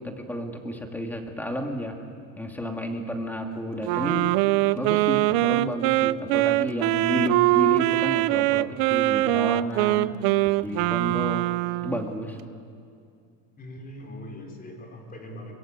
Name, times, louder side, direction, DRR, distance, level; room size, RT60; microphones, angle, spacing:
voice 1, 0.0-1.9 2.4-4.3 4.7-10.1 10.6-11.5 11.8-12.4, left 1 dB, 5° left, 3 dB, 2.3 m, -31 dB
Wind instrument woodwind instrument, 3.8-12.1, right 18 dB, 65° right, 0.7 m, -23 dB
voice 2, 13.6-15.5, left 1 dB, 25° left, 2 dB, 4.1 m, -41 dB
23.5 x 21.5 x 8.8 m, 2.3 s
cardioid pair, 150°, 37 cm